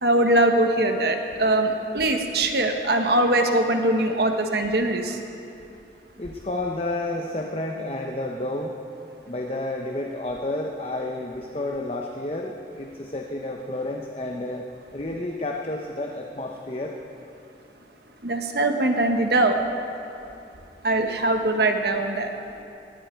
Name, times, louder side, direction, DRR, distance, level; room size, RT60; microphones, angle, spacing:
voice 1, 0.0-5.2 18.2-19.6 20.8-22.3, right 1 dB, 65° right, 4 dB, 1.3 m, -22 dB
voice 2, 6.2-8.7 9.3-14.7 14.9-16.9, left 2 dB, 35° left, 1 dB, 0.9 m, -30 dB
19.0 x 14.5 x 4.6 m, 2.7 s
head